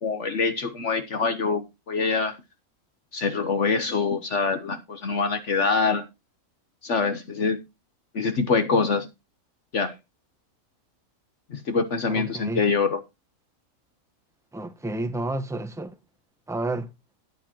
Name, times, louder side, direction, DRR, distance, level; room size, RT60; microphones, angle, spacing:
voice 1, 0.0-2.4 3.1-6.0 6.8-7.6 8.1-9.1 9.7-9.9 11.5-13.0, left 4 dB, 60° left, 1.4 m, -25 dB
voice 2, 12.1-12.6 14.5-16.0 16.5-16.9, right 2 dB, ahead, 1.0 m, -30 dB
13.0 x 10.0 x 2.9 m
omnidirectional pair, 1.5 m